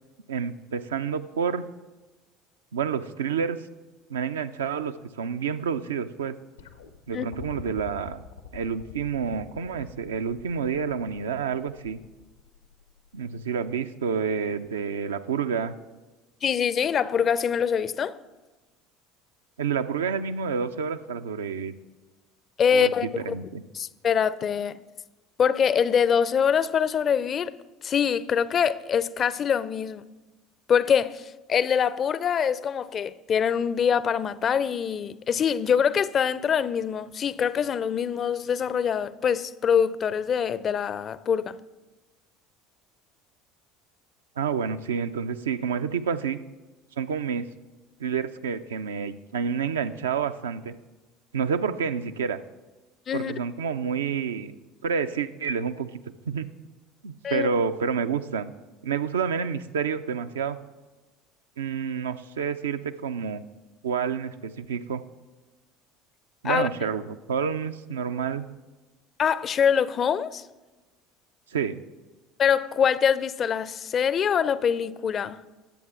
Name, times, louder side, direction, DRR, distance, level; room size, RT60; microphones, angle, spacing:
voice 1, 0.3-1.6 2.7-3.6 4.1-6.3 7.1-8.2 8.5-12.0 13.1-15.7 19.6-21.7 22.7-22.9 23.2-23.6 44.4-46.4 47.0-47.4 48.0-50.7 51.3-52.4 53.1-54.5 54.8-55.9 56.3-56.5 57.0-58.5 58.8-60.6 61.6-63.4 63.8-65.0 66.4-68.4 71.5-71.8, right 6 dB, 75° right, 0.4 m, -29 dB
sound 1, 6.6-13.7 14.9-15.0, left 8 dB, 80° left, 0.6 m, -46 dB
voice 2, 16.4-18.2 22.6-23.3 23.7-24.8 25.4-27.5 27.8-30.0 30.7-41.6 53.1-53.3 57.2-57.5 66.4-66.7 69.2-70.5 72.4-75.4, left 7 dB, 35° left, 0.4 m, -24 dB
18.5 x 8.0 x 2.5 m
figure-of-eight pair, 65°, 0 cm